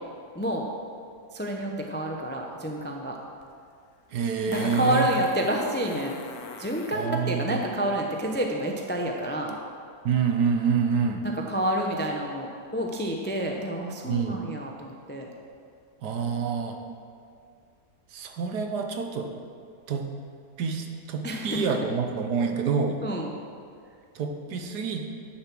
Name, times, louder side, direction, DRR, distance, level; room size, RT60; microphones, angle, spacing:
voice 1, 0.3-0.7 1.3-3.2 4.5-6.2 6.6-9.6 11.2-15.3 21.2-21.8 23.0-23.3, equal, 15° left, 1 dB, 0.3 m, -29 dB
Fart, 3.4-3.5 4.5-7.1 9.5-9.6, left 4 dB, 70° left, 1.2 m, -40 dB
voice 2, 4.1-5.1 6.9-7.6 10.0-11.3 14.0-14.4 16.0-16.8 18.1-19.3 19.9-20.2 20.6-23.0 24.1-25.1, right 6 dB, 75° right, 4 dB, 1.4 m, -27 dB
9.7 x 7.0 x 6.1 m, 2.3 s
omnidirectional pair, 1.8 m